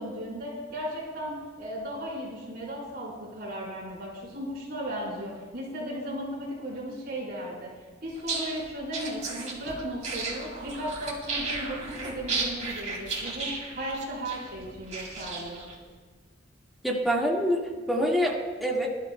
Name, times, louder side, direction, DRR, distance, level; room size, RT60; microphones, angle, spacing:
voice 1, 0.0-7.7 8.0-15.6, equal, 55° right, -6 dB, 4.4 m, -36 dB
sound 1, 8.1-15.7, right 3 dB, 35° right, 2.7 m, -34 dB
voice 2, 16.8-18.9, equal, ahead, -3 dB, 1.8 m, -26 dB
22.0 x 12.5 x 2.3 m, 1.4 s
head